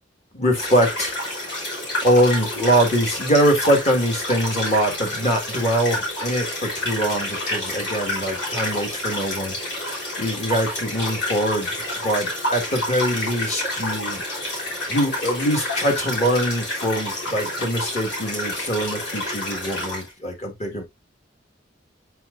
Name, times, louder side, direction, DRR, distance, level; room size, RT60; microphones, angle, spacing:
voice 1, 0.3-1.1 2.0-9.6 10.2-11.8 12.0-14.2 14.9-20.8, equal, 35° left, 2.0 m, -23 dB
sound 1, 0.5-20.1, left 1 dB, 65° left, 3.4 m, -29 dB
7.7 x 4.8 x 2.6 m
head